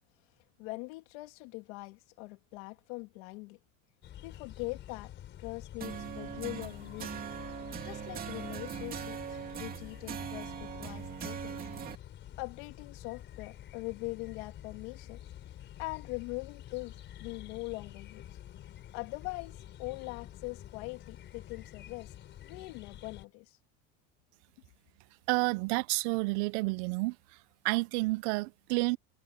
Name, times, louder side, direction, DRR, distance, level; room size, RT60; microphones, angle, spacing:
voice 1, 0.6-3.6 4.2-5.1 5.4-7.3 7.8-11.6 12.4-15.2 15.5-15.6 15.8-16.9 17.2-18.2 18.9-22.1 22.4-23.6, left 25 dB, 80° left, 2.9 m, -42 dB
sound 1, 4.0-23.2, left 11 dB, 35° left, 4.8 m, -49 dB
sound 2, 5.8-12.0, right 8 dB, 25° right, 2.5 m, -41 dB
voice 2, 25.3-27.2 27.6-29.0, right 24 dB, 90° right, 0.6 m, -30 dB
cardioid pair, 175°, 33 cm